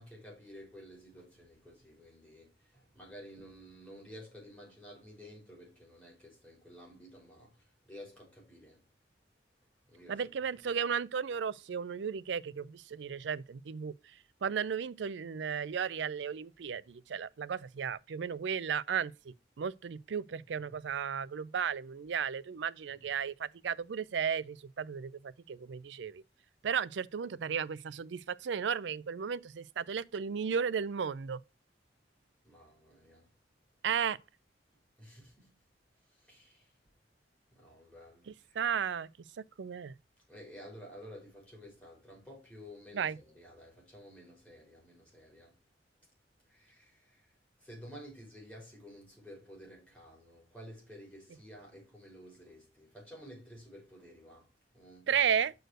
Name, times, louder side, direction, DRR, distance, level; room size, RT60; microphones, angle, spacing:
voice 1, 0.0-8.8 9.9-10.5 20.6-20.8 22.9-23.1 32.4-33.3 35.0-35.6 36.0-36.7 37.5-38.6 40.3-45.6 46.4-47.3 47.6-55.1, equal, 10° left, 4.1 m, -52 dB
voice 2, 10.1-13.9 14.4-26.2 26.6-31.4 33.8-34.2 38.3-39.1 39.4-39.9 42.9-43.2 55.1-55.5, right 7 dB, 80° right, 0.4 m, -34 dB
6.4 x 4.6 x 6.2 m
head